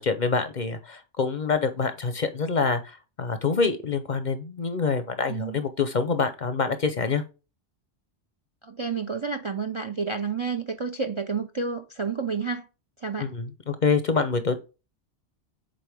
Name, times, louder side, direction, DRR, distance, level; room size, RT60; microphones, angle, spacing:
voice 1, 0.0-7.2 13.2-14.6, left 5 dB, 45° left, 0.7 m, -26 dB
voice 2, 5.3-5.6 8.6-12.7 13.0-13.3, right 5 dB, 35° right, 0.5 m, -30 dB
7.7 x 4.4 x 3.4 m
omnidirectional pair, 1.2 m